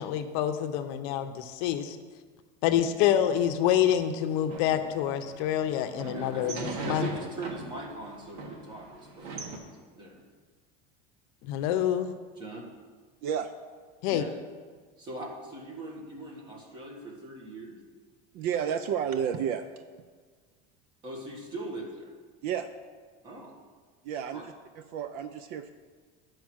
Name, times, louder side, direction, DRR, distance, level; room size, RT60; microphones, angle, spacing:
voice 1, 0.0-2.0 2.6-7.1 11.4-12.1 14.0-14.2, left 10 dB, 65° left, 9 dB, 0.7 m, -27 dB
sound 1, 4.5-9.6, right 3 dB, 80° right, 1.5 m, -40 dB
voice 2, 6.0-10.2 12.4-12.6 14.1-14.3 15.0-17.8 21.0-22.1 23.2-23.5 24.3-24.4, right 2 dB, 25° right, -1 dB, 1.6 m, -41 dB
voice 3, 18.3-19.7 22.4-22.7 24.0-25.7, right 8 dB, 50° right, 10 dB, 0.4 m, -31 dB
10.5 x 4.7 x 6.2 m, 1.5 s
cardioid pair, 170°, 20 cm